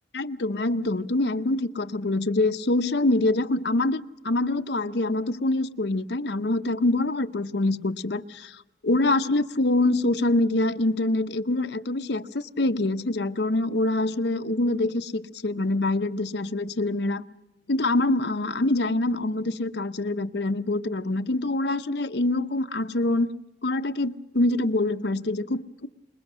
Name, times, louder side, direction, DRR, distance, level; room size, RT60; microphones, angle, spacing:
voice 1, 0.1-17.2 17.7-23.3 23.6-25.9, left 2 dB, 70° left, 8 dB, 0.8 m, -25 dB
26.0 x 21.5 x 6.2 m, 0.96 s
head